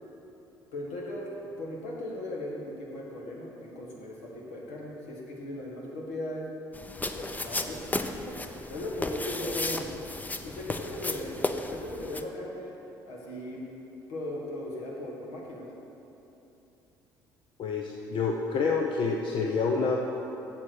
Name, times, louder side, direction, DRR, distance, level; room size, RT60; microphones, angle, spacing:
voice 1, 0.7-6.5 7.0-10.0 10.4-12.8 13.1-13.6 14.1-15.7, left 1 dB, 80° left, -3 dB, 1.9 m, -38 dB
sound 1, 6.7-12.2, left 2 dB, 15° left, 0.6 m, -34 dB
voice 2, 17.6-20.0, left 4 dB, 55° left, 1 dB, 0.8 m, -28 dB
7.4 x 7.3 x 6.5 m, 3.0 s
hypercardioid pair, 60°, 10 cm